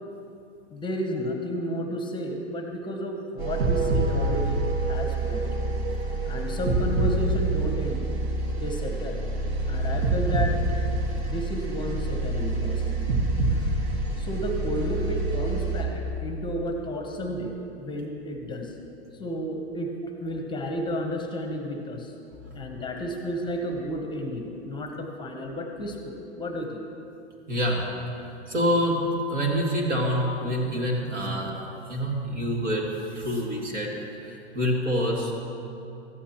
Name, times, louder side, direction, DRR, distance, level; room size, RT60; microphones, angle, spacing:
voice 1, 0.7-5.4 6.3-8.0 8.5-9.2 9.7-10.6 11.2-12.8 14.2-18.7 19.2-19.9 20.2-22.1 22.5-26.8, equal, 15° left, 3 dB, 0.8 m, -32 dB
sound 1, 3.4-15.8, right 2 dB, 60° right, 1.8 m, -26 dB
voice 2, 27.5-27.8 28.5-29.0 29.3-31.5 31.9-32.8 33.1-33.9 34.2-35.3, equal, 85° right, -2 dB, 2.4 m, -26 dB
14.0 x 9.2 x 2.9 m, 2.7 s
hypercardioid pair, 120°, 35 cm